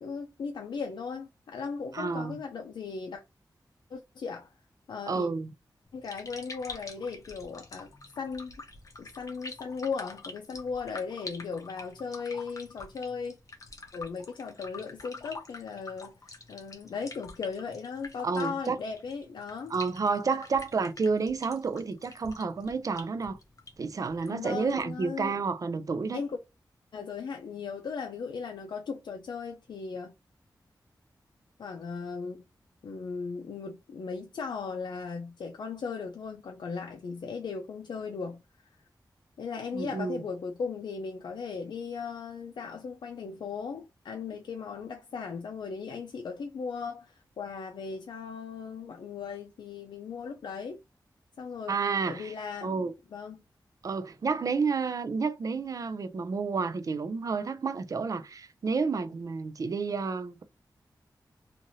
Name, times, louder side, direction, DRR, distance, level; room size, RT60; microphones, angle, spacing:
voice 1, 0.0-3.2 3.9-4.5 4.9-5.3 5.9-8.6 9.0-13.4 13.9-19.7 24.3-25.4 26.1-26.4 26.9-30.2 31.6-32.4 32.8-38.4 39.4-50.8 51.4-51.8 52.0-53.4, left 5 dB, 85° left, 0.4 m, -37 dB
voice 2, 1.9-2.4 5.1-5.5 18.2-18.8 19.7-23.4 23.8-26.2 39.7-40.2 51.7-52.3 52.6-52.9 53.8-60.4, right 4 dB, 50° right, 0.4 m, -30 dB
sound 1, 5.8-25.0, left 3 dB, 45° left, 0.7 m, -47 dB
2.7 x 2.5 x 2.9 m
wide cardioid pair, 115°, 8 cm